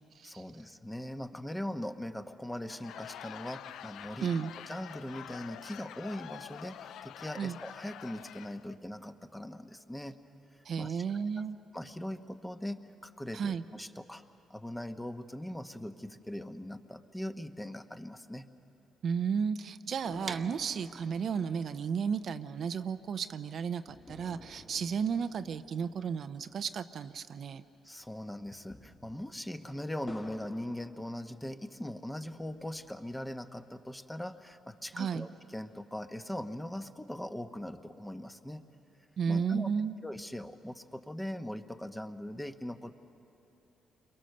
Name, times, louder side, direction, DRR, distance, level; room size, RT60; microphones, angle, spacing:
voice 1, 0.2-4.3 4.7-10.2 10.8-11.3 11.7-14.2 14.5-18.5 27.8-38.6 39.3-39.7 40.0-42.9, left 1 dB, 10° left, 7 dB, 1.1 m, -40 dB
Laughter / Crowd, 2.5-8.7, left 10 dB, 80° left, 0.5 m, -47 dB
voice 2, 4.2-4.5 7.4-7.6 10.6-11.6 13.3-13.6 19.0-27.6 34.9-35.3 39.2-39.9, right 6 dB, 60° right, 10 dB, 0.6 m, -33 dB
sound 1, 20.0-27.6 27.9-28.0 28.5-31.8 32.3-33.3, left 2 dB, 25° left, 1.9 m, -54 dB
sound 2, 20.3-26.0, right 5 dB, 40° right, 1.0 m, -49 dB
29.5 x 23.0 x 6.7 m, 2.9 s
cardioid pair, 90°, 0 cm